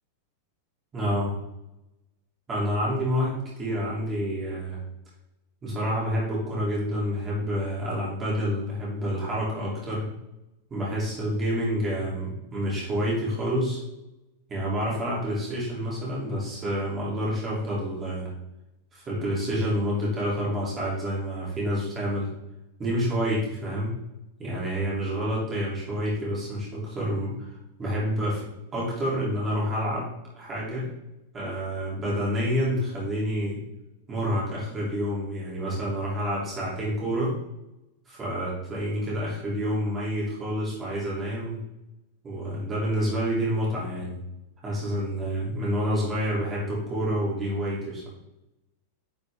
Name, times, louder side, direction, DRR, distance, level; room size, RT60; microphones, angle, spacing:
voice 1, 0.9-1.3 2.5-4.8 5.6-10.0 10.7-13.8 14.5-18.3 18.9-22.3 22.8-23.9 24.4-27.5 27.8-28.4 28.7-30.1 30.4-30.9 31.3-33.6 34.1-37.3 38.1-41.6 42.2-44.2 44.6-48.1, equal, 15° right, -6 dB, 2.7 m, -28 dB
10.0 x 5.0 x 3.5 m, 0.92 s
supercardioid pair, 175°, 0 cm